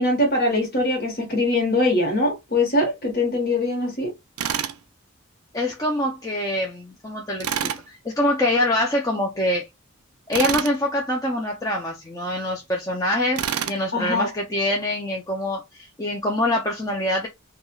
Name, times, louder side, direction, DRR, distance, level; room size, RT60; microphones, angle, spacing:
voice 1, 0.0-4.1 13.9-14.3, left 2 dB, 45° left, 1.1 m, -22 dB
Tools, 4.4-4.8 7.4-7.8 10.3-10.8 13.4-13.8, right 9 dB, 85° right, 0.4 m, -26 dB
voice 2, 5.5-9.7 10.3-17.3, left 1 dB, 15° left, 0.4 m, -25 dB
3.1 x 2.3 x 2.3 m
head